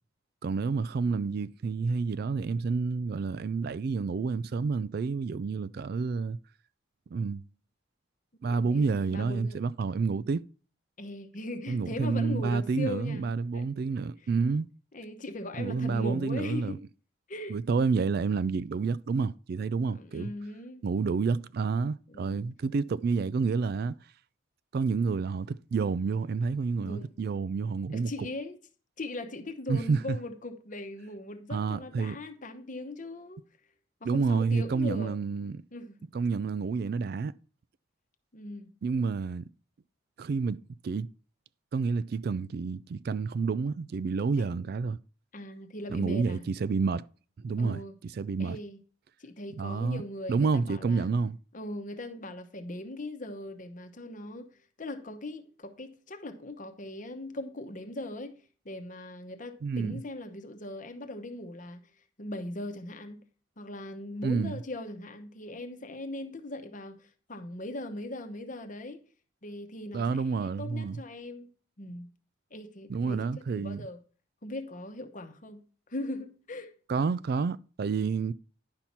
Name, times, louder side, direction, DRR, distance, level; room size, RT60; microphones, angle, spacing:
voice 1, 0.4-6.4 7.1-7.4 8.4-10.4 11.7-14.7 15.6-16.8 17.5-20.3 20.8-24.0 24.7-28.1 29.7-30.2 31.5-32.2 34.0-35.6 36.1-37.3 38.8-39.5 40.2-41.1 41.7-45.0 45.9-47.1 47.4-47.8 48.2-48.6 49.6-50.0 50.3-51.4 59.6-60.0 64.2-64.6 69.9-71.0 72.9-73.9 76.9-78.3, right 4 dB, 50° right, 0.3 m, -29 dB
voice 2, 8.4-9.6 11.0-13.7 14.9-16.8 17.3-17.6 19.9-20.9 22.1-22.4 26.8-27.1 27.9-28.6 29.0-33.4 34.0-35.2 35.7-36.0 38.3-38.7 44.4-44.6 45.3-46.5 47.6-48.0 48.4-48.8 49.2-51.1 51.5-61.9 62.2-63.2 63.6-69.0 69.4-71.5 71.8-72.1 72.5-74.0 74.4-75.6 75.9-76.7, left 1 dB, 40° left, 0.9 m, -40 dB
10.5 x 5.8 x 4.2 m
head